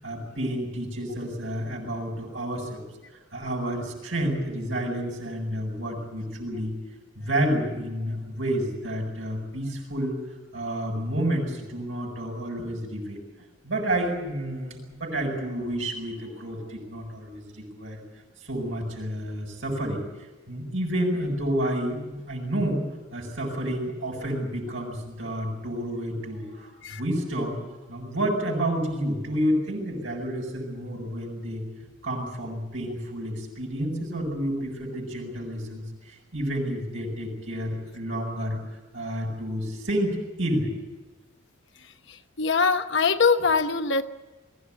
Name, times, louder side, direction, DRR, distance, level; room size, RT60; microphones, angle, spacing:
voice 1, 0.0-2.8 3.1-6.7 7.2-10.2 10.5-13.2 13.6-18.0 18.4-20.0 20.5-22.8 23.1-31.6 32.0-38.6 38.9-40.7, right 1 dB, 70° right, 1 dB, 7.8 m, -30 dB
voice 2, 42.1-44.0, left 5 dB, 60° left, 8 dB, 1.0 m, -23 dB
22.5 x 17.0 x 9.7 m, 1.2 s
head